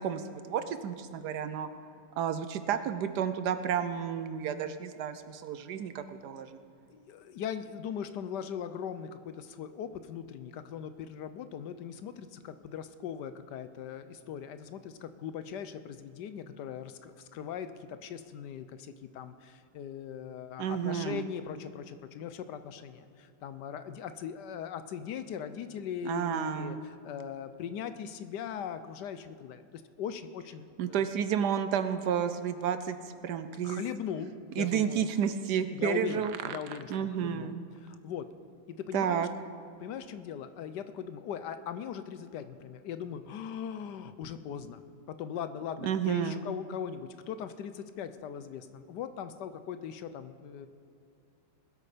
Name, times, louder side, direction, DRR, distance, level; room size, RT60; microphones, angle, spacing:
voice 1, 0.0-1.7 2.2-6.6 20.6-21.2 26.0-26.8 30.8-33.0 33.2-33.8 34.6-37.6 38.9-39.3 45.8-46.4, right 8 dB, 70° right, 10 dB, 1.1 m, -31 dB
voice 2, 6.9-29.6 30.0-31.1 33.6-35.1 35.7-37.5 37.8-38.3 38.7-39.3 39.8-44.8 45.1-50.7, left 8 dB, 70° left, 11 dB, 1.2 m, -40 dB
20.5 x 8.5 x 5.0 m, 2.4 s
omnidirectional pair, 2.0 m